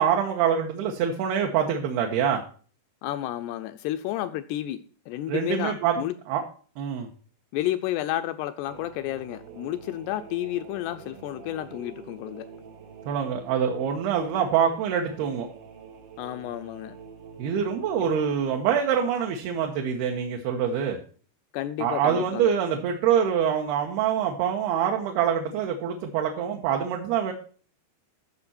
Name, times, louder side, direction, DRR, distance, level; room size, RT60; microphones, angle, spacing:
voice 1, 0.0-2.4 5.3-5.9 6.3-6.4 6.8-7.1 13.1-15.5 17.4-21.0 21.8-27.3, right 8 dB, 70° right, 2 dB, 2.8 m, -25 dB
voice 2, 3.0-6.1 7.5-12.5 16.2-17.0 18.0-18.1 21.5-22.5, left 13 dB, 85° left, 10 dB, 2.4 m, -31 dB
sound 1, 8.7-18.6, right 5 dB, 90° right, 4.2 m, -46 dB
14.0 x 5.8 x 4.2 m, 0.42 s
omnidirectional pair, 5.1 m